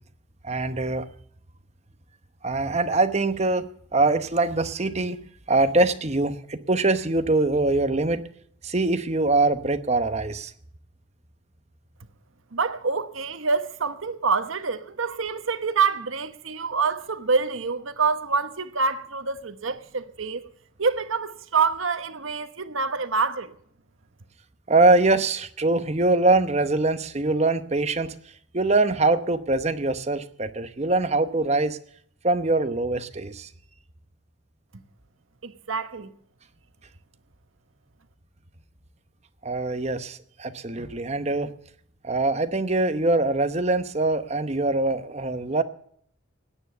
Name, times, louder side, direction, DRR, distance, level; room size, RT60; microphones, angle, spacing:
voice 1, 0.4-1.1 2.4-5.2 5.5-8.3 8.6-10.5 24.7-28.1 28.5-31.8 32.2-33.5 39.4-41.5 42.0-45.6, right 2 dB, 30° right, 0.9 m, -23 dB
voice 2, 12.5-20.4 20.8-23.5 35.4-36.1, right 5 dB, 80° right, 1.1 m, -26 dB
17.0 x 9.6 x 6.8 m
head